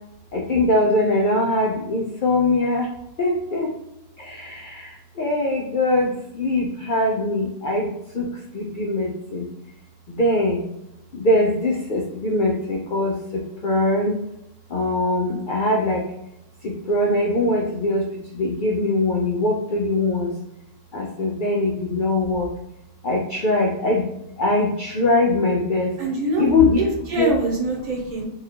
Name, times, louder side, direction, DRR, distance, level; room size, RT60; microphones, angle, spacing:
voice 1, 0.3-2.9 3.2-3.7 4.3-4.8 5.2-6.1 6.4-7.9 8.2-8.3 8.5-9.5 10.2-10.6 11.1-13.1 13.6-14.1 14.7-16.0 16.6-18.0 18.3-20.3 20.9-22.5 23.0-24.0 24.4-25.9 26.4-26.8 27.2-27.3, left 2 dB, 75° left, -1 dB, 0.4 m, -21 dB
voice 2, 26.0-26.5 26.8-28.2, right 1 dB, 85° right, -1 dB, 1.7 m, -24 dB
4.0 x 2.5 x 2.8 m, 0.86 s
omnidirectional pair, 1.6 m